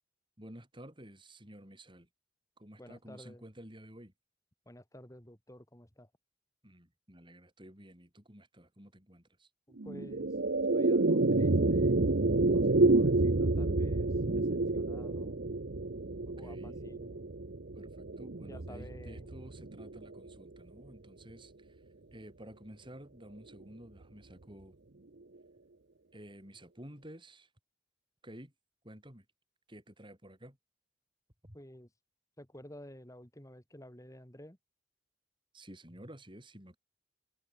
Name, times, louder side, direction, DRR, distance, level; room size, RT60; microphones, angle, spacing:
voice 1, 0.4-2.1 2.6-4.1 6.6-9.5 16.2-16.8 17.7-21.8 22.1-24.7 26.1-27.5 28.2-28.5 28.8-29.3 29.7-30.6 31.4-31.6 35.5-36.8, right 1 dB, 25° right, 7.5 m, -52 dB
voice 2, 2.8-3.4 4.7-6.1 9.7-10.3 10.7-15.4 16.4-17.3 18.5-19.3 31.5-31.9 32.4-34.6, left 1 dB, 15° left, 3.6 m, -52 dB
sound 1, 9.8-20.3, right 2 dB, 55° right, 0.9 m, -29 dB
head